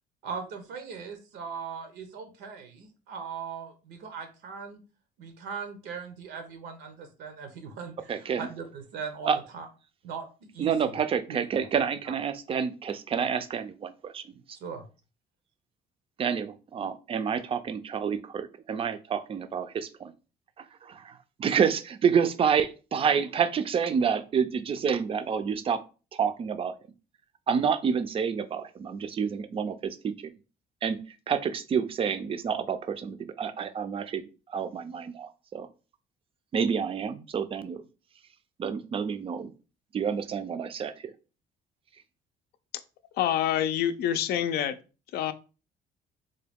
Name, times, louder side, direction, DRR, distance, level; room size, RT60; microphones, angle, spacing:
voice 1, 0.2-4.8 5.2-9.7 10.0-10.3 10.5-11.0 11.6-11.7 12.1-12.2 14.6-14.8, right 6 dB, 85° right, 0.8 m, -39 dB
voice 2, 8.1-8.5 9.2-9.4 10.6-14.2 16.2-20.1 20.6-25.8 26.1-26.7 27.5-30.3 30.8-31.0 31.3-34.2 34.5-35.7 36.5-37.8 38.6-39.5 39.9-40.9, right 7 dB, 35° right, 0.4 m, -28 dB
voice 3, 43.2-44.8 45.1-45.3, left 10 dB, 70° left, 0.4 m, -26 dB
3.7 x 2.2 x 3.4 m
cardioid pair, 110°, 17 cm